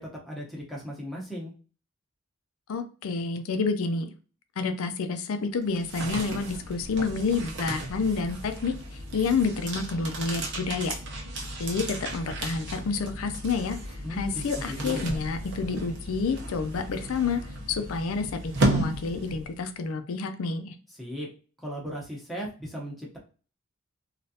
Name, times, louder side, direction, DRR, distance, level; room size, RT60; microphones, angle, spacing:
voice 1, 0.0-1.5 14.0-15.2 21.0-21.3 21.6-23.2, equal, ahead, -3 dB, 0.8 m, -37 dB
voice 2, 2.7-4.1 4.6-11.0 11.4-20.8, left 4 dB, 80° left, 8 dB, 0.4 m, -29 dB
sound 1, 5.6-19.7, right 1 dB, 55° right, 0.7 m, -34 dB
3.2 x 2.4 x 2.7 m, 0.37 s
head